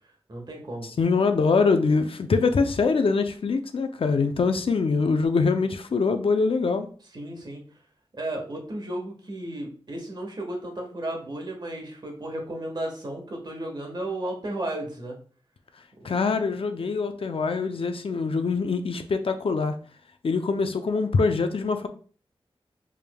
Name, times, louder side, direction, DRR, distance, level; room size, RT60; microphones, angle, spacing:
voice 1, 0.3-0.9 7.1-7.6 8.1-15.1 16.0-16.1, right 1 dB, 45° right, 1.3 m, -34 dB
voice 2, 1.0-6.9 16.0-19.8 20.2-21.9, left 4 dB, 65° left, 0.5 m, -24 dB
4.9 x 3.5 x 2.2 m
wide cardioid pair, 90°, 10 cm